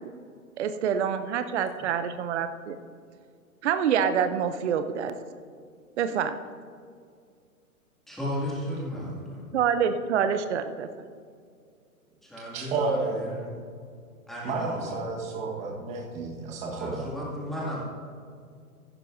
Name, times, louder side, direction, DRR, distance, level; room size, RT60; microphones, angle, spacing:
voice 1, 0.6-2.8 3.6-5.2 6.0-6.3 9.5-10.9, right 7 dB, 50° right, 9 dB, 0.6 m, -26 dB
voice 2, 8.1-9.5 12.2-13.5 14.3-15.0 16.8-17.8, equal, ahead, -6 dB, 2.1 m, -35 dB
voice 3, 12.5-13.3 14.4-17.1, right 3 dB, 15° right, -3 dB, 1.3 m, -31 dB
15.0 x 11.0 x 2.6 m, 2.2 s
hypercardioid pair, 150°, 45 cm